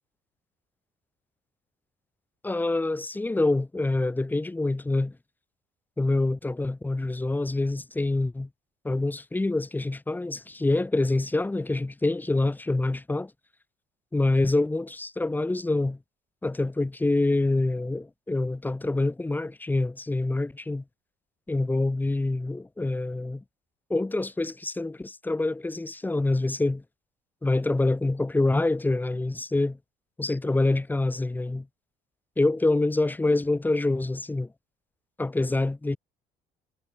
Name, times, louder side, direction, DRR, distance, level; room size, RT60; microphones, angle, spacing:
voice 1, 2.4-5.1 6.0-8.5 8.8-13.3 14.1-16.0 16.4-20.8 21.5-23.4 23.9-26.8 27.4-29.8 30.2-31.7 32.4-34.5 35.2-36.0, left 2 dB, 10° left, 1.0 m, -26 dB
supercardioid pair, 85°, 16 cm